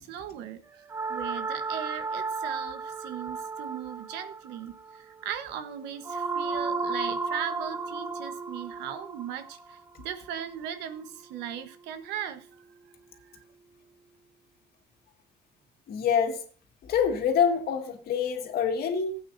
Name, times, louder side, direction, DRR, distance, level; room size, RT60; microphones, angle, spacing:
voice 1, 0.0-12.6 13.1-13.4, right 9 dB, 85° right, 1.2 m, -38 dB
sound 1, 0.9-11.1, right 4 dB, 15° right, 0.5 m, -34 dB
voice 2, 15.9-16.4 16.9-19.2, left 7 dB, 65° left, 2.1 m, -26 dB
16.0 x 8.5 x 2.7 m
cardioid pair, 110°, 17 cm